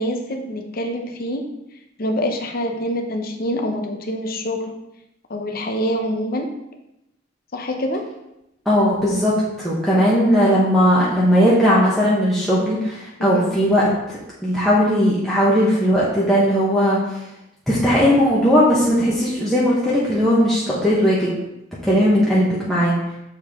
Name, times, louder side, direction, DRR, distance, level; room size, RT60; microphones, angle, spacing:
voice 1, 0.0-1.5 2.0-4.7 5.3-6.5 7.5-8.0 13.3-13.5, equal, 50° left, 3 dB, 0.7 m, -25 dB
voice 2, 8.6-9.3 9.6-13.9 14.4-17.0 17.7-21.3 21.8-22.9, equal, ahead, -9 dB, 1.0 m, -17 dB
7.0 x 4.3 x 3.6 m, 0.87 s
head